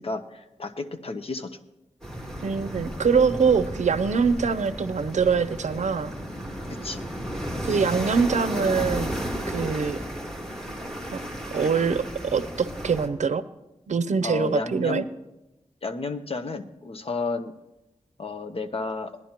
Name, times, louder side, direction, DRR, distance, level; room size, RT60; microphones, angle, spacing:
voice 1, 0.0-1.6 6.7-7.0 14.2-15.1 15.8-17.5 18.2-19.2, left 3 dB, 55° left, 7 dB, 0.8 m, -32 dB
sound 1, 2.0-13.1, equal, 5° left, 1.9 m, -33 dB
voice 2, 2.4-6.1 7.7-9.1 9.5-10.0 11.1-11.2 11.5-13.4 13.9-15.0, right 5 dB, 75° right, 14 dB, 0.5 m, -24 dB
19.0 x 11.0 x 2.9 m, 0.94 s
wide cardioid pair, 95°, 12 cm